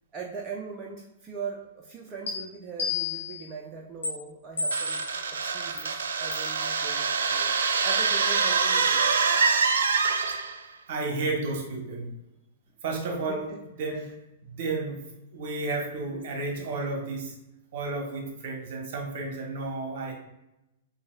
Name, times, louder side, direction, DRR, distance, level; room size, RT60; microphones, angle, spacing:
voice 1, 0.1-5.0 5.4-7.5 7.8-9.2 13.5-13.6, right 5 dB, 25° right, -2 dB, 0.6 m, -40 dB
sound 1, 2.3-2.4 2.8-3.4 4.0-4.1 4.6-5.1 5.8-5.9 6.3-6.5, left 3 dB, 70° left, 1.5 m, -30 dB
sound 2, 4.7-10.6, right 5 dB, 65° right, 0.4 m, -25 dB
voice 2, 10.9-12.1 12.8-13.5 13.8-14.0 14.5-15.0 15.3-17.3 17.7-20.1, right 3 dB, 50° right, 2 dB, 1.1 m, -32 dB
7.0 x 2.8 x 2.3 m, 0.91 s
figure-of-eight pair, 105°, 0 cm